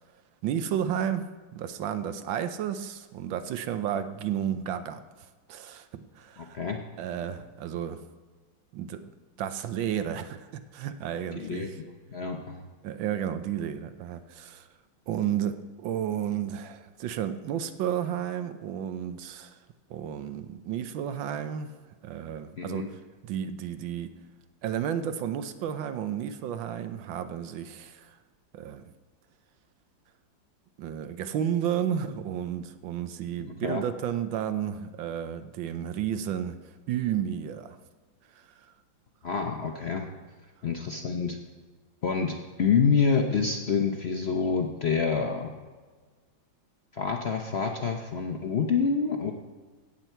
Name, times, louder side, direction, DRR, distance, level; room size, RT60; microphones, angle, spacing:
voice 1, 0.4-1.2 1.5-5.0 5.5-6.6 7.0-8.0 8.7-9.0 9.4-11.7 12.8-14.7 15.1-19.6 19.9-21.7 22.0-24.1 24.6-28.1 28.5-28.9 30.8-36.6 36.9-37.8, right 9 dB, 90° right, 11 dB, 1.5 m, -32 dB
voice 2, 6.4-6.8 11.3-12.6 22.6-22.9 33.4-33.8 39.2-40.1 40.6-41.4 42.0-45.5 46.9-49.3, left 5 dB, 55° left, 3 dB, 0.7 m, -27 dB
16.5 x 7.9 x 4.5 m, 1.4 s
omnidirectional pair, 2.1 m